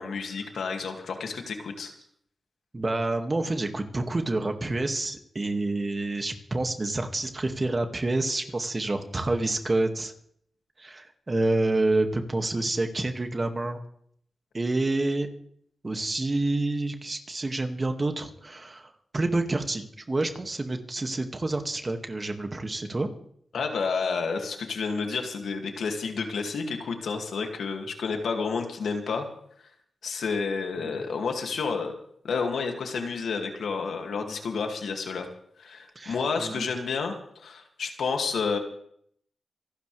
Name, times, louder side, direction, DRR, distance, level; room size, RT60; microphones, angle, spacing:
voice 1, 0.0-1.9 23.5-29.3 30.0-31.9 32.2-35.3 35.6-38.6, left 5 dB, 85° left, 3 dB, 2.4 m, -30 dB
voice 2, 2.7-10.1 10.8-13.8 14.5-15.3 15.8-23.1 30.8-31.0 36.0-36.6, right 2 dB, 35° right, 5 dB, 2.1 m, -28 dB
27.0 x 12.0 x 3.4 m, 0.67 s
cardioid pair, 60°, 0 cm